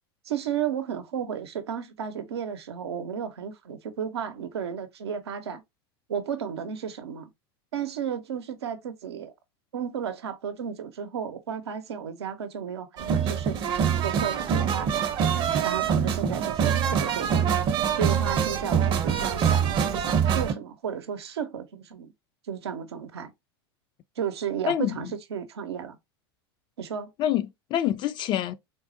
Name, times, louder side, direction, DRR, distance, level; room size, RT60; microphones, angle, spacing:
voice 1, 0.3-5.6 6.1-7.3 7.7-9.3 9.7-15.1 15.6-17.5 18.0-22.1 22.5-23.3 24.2-26.0 26.8-27.1, right 8 dB, 90° right, 0.6 m, -33 dB
sound 1, 13.0-20.5, right 7 dB, 35° right, 0.6 m, -24 dB
voice 2, 24.7-25.0 27.2-28.5, left 11 dB, 35° left, 0.3 m, -26 dB
3.6 x 2.0 x 2.5 m
hypercardioid pair, 100°, 13 cm